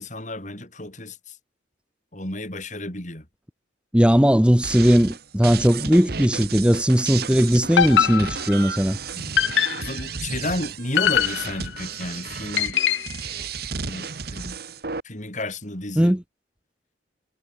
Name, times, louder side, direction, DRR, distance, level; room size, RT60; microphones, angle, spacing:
voice 1, 0.0-1.4 2.1-3.3 9.1-12.8 13.8-14.6 15.0-16.2, left 1 dB, 40° left, 5.6 m, -32 dB
voice 2, 3.9-9.0 16.0-16.2, equal, 5° right, 0.9 m, -18 dB
sound 1, 4.6-15.0, right 5 dB, 55° right, 1.2 m, -33 dB
sound 2, 7.8-8.7 9.4-10.0 11.0-11.8 12.6-13.2, left 9 dB, 75° left, 0.5 m, -22 dB
head